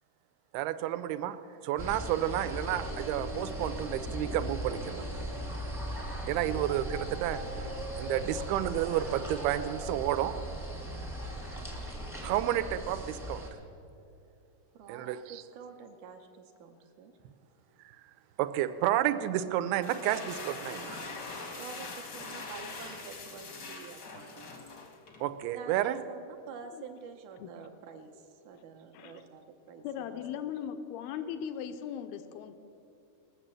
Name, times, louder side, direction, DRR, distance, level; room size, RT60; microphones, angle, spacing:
voice 1, 0.5-1.4 1.6-5.1 6.3-7.4 8.0-10.4 12.2-13.4 14.9-15.3 18.4-21.0 25.2-26.0, right 12 dB, 90° right, 11 dB, 2.5 m, -31 dB
sound 1, 1.8-13.5, equal, 5° right, 0.4 m, -38 dB
voice 2, 14.7-17.1 21.6-24.5 25.5-30.2, right 5 dB, 75° right, 4 dB, 1.8 m, -48 dB
sound 2, 19.7-25.3, left 3 dB, 70° left, 1.0 m, -43 dB
voice 3, 29.8-32.6, left 9 dB, 90° left, 9 dB, 2.6 m, -38 dB
20.0 x 6.9 x 7.5 m, 2.6 s
omnidirectional pair, 4.3 m